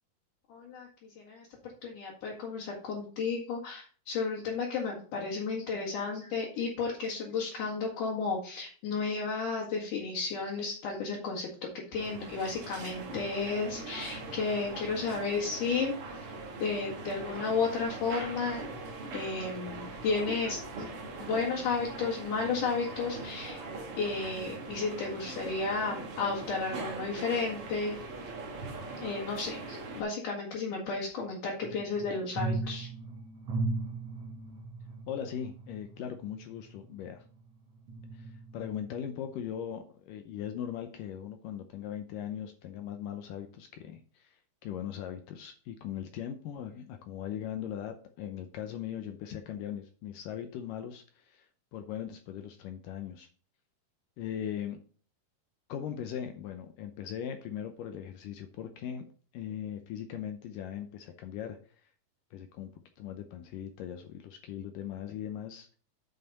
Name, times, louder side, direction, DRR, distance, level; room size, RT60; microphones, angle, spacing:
voice 1, 0.5-1.5 1.8-15.9 16.6-18.7 19.1-20.6 21.2-23.6 24.0-28.0 29.0-32.9, left 4 dB, 60° left, -4 dB, 3.1 m, -33 dB
sound 1, 11.9-30.0, right 3 dB, 75° right, 1.3 m, -41 dB
sound 2, 31.6-37.4 37.9-39.0 39.5-39.6, right 2 dB, 35° right, 4.0 m, -38 dB
voice 2, 35.1-37.3 38.1-53.3 54.2-54.8 55.7-59.1 59.3-61.9 62.3-65.8, left 9 dB, 80° left, 6 dB, 2.0 m, -39 dB
9.1 x 5.7 x 4.0 m, 0.43 s
omnidirectional pair, 4.5 m